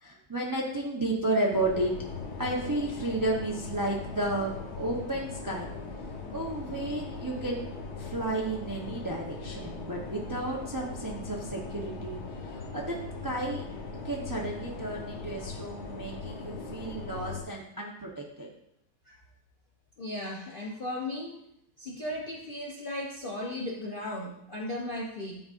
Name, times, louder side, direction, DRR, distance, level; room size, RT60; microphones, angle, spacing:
voice 1, 0.0-1.9 2.4-5.7 6.3-7.7 8.0-12.2 12.5-12.9 13.2-13.6 14.0-18.5, right 2 dB, 30° right, -2 dB, 0.3 m, -32 dB
sound 1, 1.5-17.4, left 4 dB, 70° left, 1.6 m, -40 dB
voice 2, 20.0-21.4 21.8-25.4, left 1 dB, 55° left, -3 dB, 0.6 m, -36 dB
11.0 x 3.9 x 2.5 m, 0.78 s
omnidirectional pair, 1.8 m